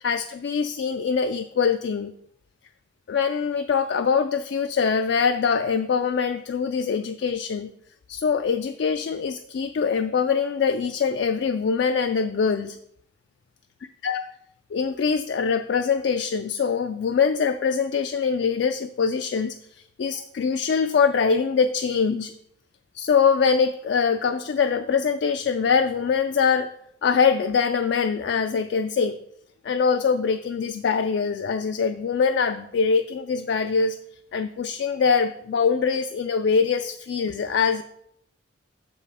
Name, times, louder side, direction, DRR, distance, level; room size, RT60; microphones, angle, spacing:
voice 1, 0.0-2.1 3.1-7.7 8.1-12.8 14.0-14.3 14.7-19.6 20.0-22.3 22.9-26.7 27.0-29.2 29.6-34.0 34.3-37.8, left 5 dB, 60° left, 8 dB, 0.3 m, -23 dB
6.6 x 5.4 x 4.8 m, 0.72 s
head